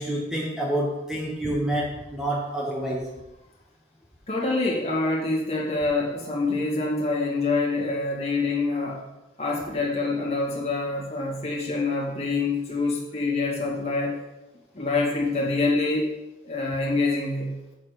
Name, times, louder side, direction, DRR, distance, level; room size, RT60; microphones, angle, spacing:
voice 1, 0.0-3.1, right 1 dB, 5° right, -4 dB, 1.2 m, -28 dB
voice 2, 4.3-9.0 9.4-14.2 14.7-16.1 16.4-17.5, left 3 dB, 35° left, -4 dB, 2.2 m, -26 dB
8.3 x 7.3 x 4.8 m, 1.0 s
head